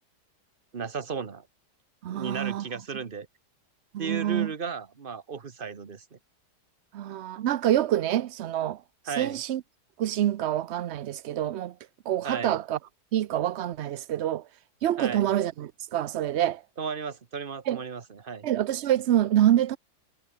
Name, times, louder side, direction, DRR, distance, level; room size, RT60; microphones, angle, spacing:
voice 1, 0.7-1.5 2.1-3.3 4.0-6.2 9.1-9.4 12.2-12.6 15.0-15.3 16.8-18.5, right 5 dB, 35° right, 1.3 m, -35 dB
voice 2, 2.0-2.7 3.9-4.5 6.9-8.8 9.2-9.6 10.0-11.7 12.1-12.8 13.1-14.5 14.8-16.6 17.7-17.8 18.4-19.8, right 12 dB, 75° right, 0.6 m, -26 dB
omnidirectional pair, 1.8 m